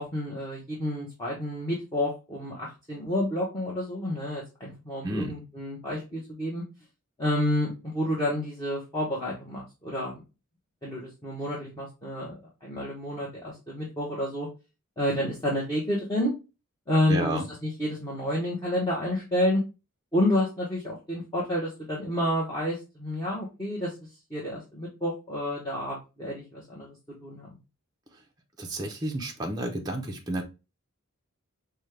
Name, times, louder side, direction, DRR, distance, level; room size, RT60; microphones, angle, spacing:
voice 1, 0.0-6.6 7.2-10.2 10.8-14.5 15.0-16.3 16.9-19.6 20.1-23.9 24.3-26.9 27.2-27.5, left 1 dB, 15° left, -5 dB, 1.0 m, -29 dB
voice 2, 5.0-5.3 17.1-17.5 28.6-30.4, right 1 dB, 15° right, 0 dB, 0.6 m, -31 dB
5.3 x 2.2 x 3.2 m, 0.28 s
head